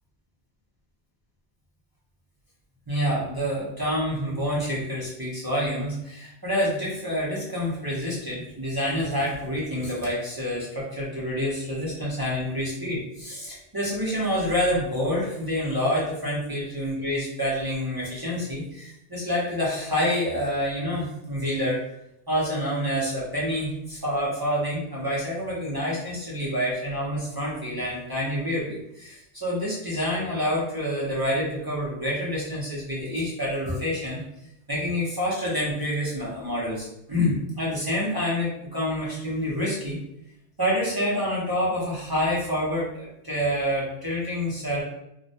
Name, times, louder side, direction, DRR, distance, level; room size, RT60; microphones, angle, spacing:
voice 1, 2.9-21.8 22.3-34.2 34.7-40.0 40.6-44.8, equal, 35° right, -7 dB, 0.3 m, -27 dB
2.2 x 2.1 x 2.6 m, 0.83 s
omnidirectional pair, 1.2 m